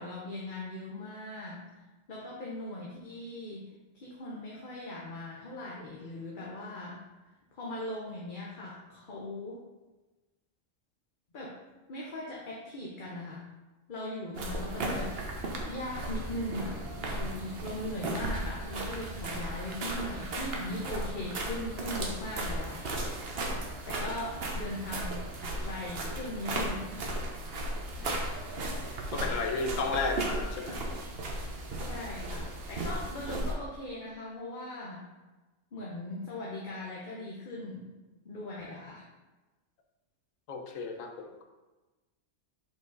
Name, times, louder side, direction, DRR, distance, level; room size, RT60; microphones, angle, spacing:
voice 1, 0.0-7.0 7.5-9.6 11.3-11.6 11.9-13.4 13.9-15.1 15.7-22.8 23.9-25.2 25.6-27.0 27.9-28.2 31.8-35.0 35.7-37.9 38.2-39.1, left 1 dB, 45° left, -4 dB, 1.0 m, -39 dB
sound 1, 14.3-33.5, right 1 dB, 55° right, 1.1 m, -35 dB
voice 2, 29.1-30.9 40.5-41.4, left 4 dB, 85° left, 4 dB, 1.2 m, -33 dB
5.3 x 5.1 x 3.9 m, 1.1 s
omnidirectional pair, 1.3 m